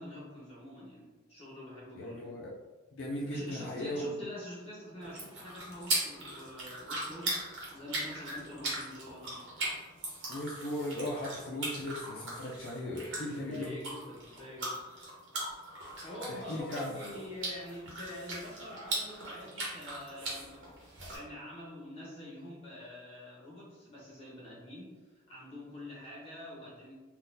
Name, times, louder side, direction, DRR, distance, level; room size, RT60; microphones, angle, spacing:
voice 1, 0.0-2.3 3.3-7.4 7.7-9.4 13.3-14.8 16.0-24.9 25.3-26.9, left 1 dB, 30° left, -5 dB, 1.1 m, -46 dB
voice 2, 1.9-2.5 2.9-4.2 10.3-13.7 16.3-16.9, left 1 dB, 65° left, -4 dB, 0.4 m, -37 dB
sound 1, 5.0-21.2, right 2 dB, 65° right, 1.0 m, -39 dB
3.8 x 2.3 x 2.6 m, 1.3 s
head